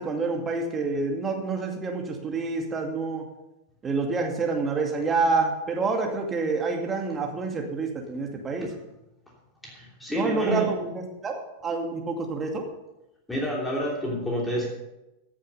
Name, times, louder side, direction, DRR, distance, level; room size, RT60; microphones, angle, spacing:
voice 1, 0.0-3.2 3.8-8.7 10.1-11.3 11.6-12.6, right 4 dB, 20° right, 2 dB, 2.3 m, -27 dB
voice 2, 9.6-10.7 13.3-14.7, equal, 5° left, -3 dB, 2.9 m, -29 dB
15.5 x 7.5 x 5.5 m, 0.94 s
figure-of-eight pair, 90°, 0 cm